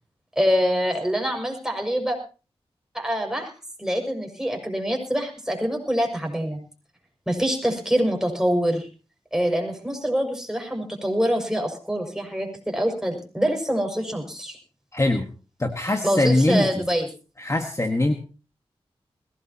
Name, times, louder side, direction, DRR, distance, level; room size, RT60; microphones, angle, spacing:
voice 1, 0.4-2.2 2.9-3.5 3.8-6.6 7.3-8.9 9.3-14.6 16.0-17.1, equal, 5° right, 2 dB, 6.0 m, -25 dB
voice 2, 14.9-15.3 15.6-16.8 17.4-18.1, left 2 dB, 25° left, 5 dB, 1.6 m, -22 dB
21.0 x 17.0 x 2.9 m, 0.35 s
cardioid pair, 60°, 11 cm